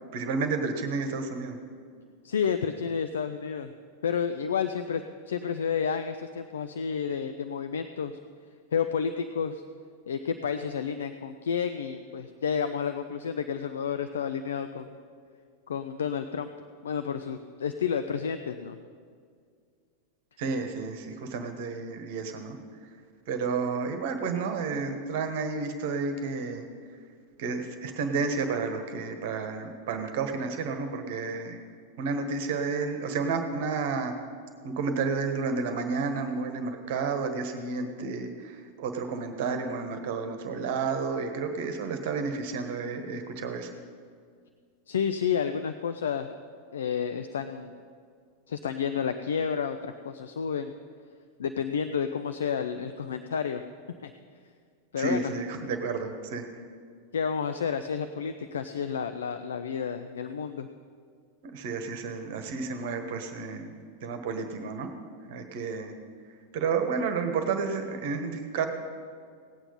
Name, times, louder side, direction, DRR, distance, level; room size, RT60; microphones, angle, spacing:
voice 1, 0.1-1.6 20.4-22.6 23.3-26.6 27.4-31.6 32.0-34.1 34.6-43.7 55.0-56.4 61.5-63.7 64.0-64.9 65.3-65.9 66.5-68.7, right 4 dB, 50° right, 6 dB, 1.3 m, -31 dB
voice 2, 2.2-3.7 4.0-8.1 8.7-9.6 10.1-14.9 15.7-16.5 16.8-18.8 44.9-46.3 46.7-47.7 48.5-50.7 51.4-53.6 54.0-54.1 54.9-55.3 57.1-60.7, left 7 dB, 65° left, 9 dB, 0.5 m, -30 dB
17.5 x 9.0 x 5.5 m, 2.1 s
figure-of-eight pair, 90°, 0 cm